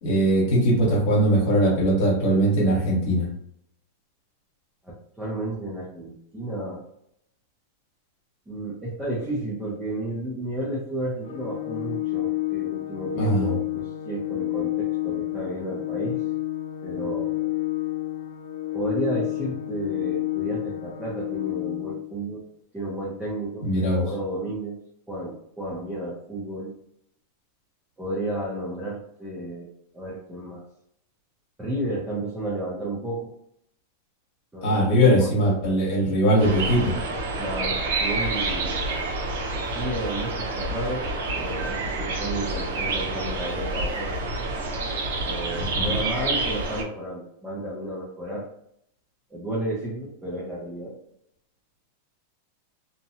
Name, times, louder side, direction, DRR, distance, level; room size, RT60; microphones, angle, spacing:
voice 1, 0.0-3.3 13.2-13.5 23.6-24.0 34.6-37.0 45.5-45.9, equal, 45° left, -3 dB, 1.1 m, -21 dB
voice 2, 4.8-6.8 8.5-16.2 16.8-17.5 18.7-22.4 22.7-24.8 25.1-26.8 28.0-30.6 31.6-33.3 34.5-35.3 37.4-38.9 39.7-44.2 45.2-48.5 49.3-51.0, right 1 dB, 5° right, -7 dB, 0.5 m, -32 dB
Organ, 11.2-22.2, left 17 dB, 75° left, 0.5 m, -29 dB
sound 1, 36.4-46.8, right 2 dB, 85° right, 0.6 m, -28 dB
2.7 x 2.1 x 2.7 m, 0.71 s
supercardioid pair, 175°, 0 cm